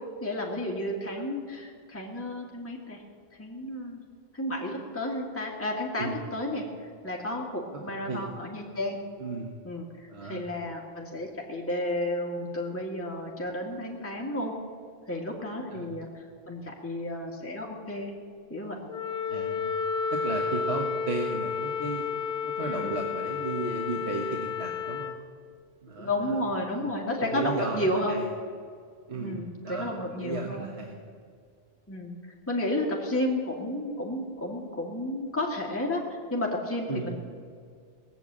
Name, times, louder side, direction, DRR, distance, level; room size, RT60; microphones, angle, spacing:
voice 1, 0.2-3.0 3.4-4.0 4.3-9.0 9.6-14.5 15.1-18.1 18.5-18.9 22.6-22.9 26.0-28.2 29.1-30.7 31.9-32.1 32.5-36.0 36.3-37.2, left 1 dB, 10° left, -2 dB, 1.8 m, -32 dB
voice 2, 9.2-9.6 10.1-10.4 15.7-15.9 19.3-19.8 20.1-22.0 22.4-25.2 25.8-26.4 26.6-26.8 27.2-28.3 29.1-31.0 36.9-37.2, right 3 dB, 75° right, 1 dB, 1.6 m, -34 dB
Wind instrument woodwind instrument, 18.9-25.2, left 6 dB, 55° left, 1.2 m, -31 dB
19.5 x 7.0 x 8.7 m, 2.1 s
omnidirectional pair, 1.1 m